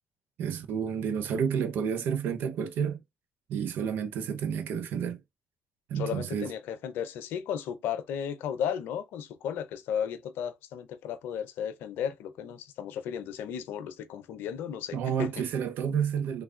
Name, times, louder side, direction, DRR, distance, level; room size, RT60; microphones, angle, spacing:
voice 1, 0.4-3.0 3.5-5.2 5.9-6.5 14.9-16.4, right 7 dB, 75° right, 0.6 m, -30 dB
voice 2, 6.0-15.4 15.8-16.0, left 8 dB, 80° left, 0.6 m, -34 dB
3.2 x 2.3 x 3.7 m
supercardioid pair, 55°, 4 cm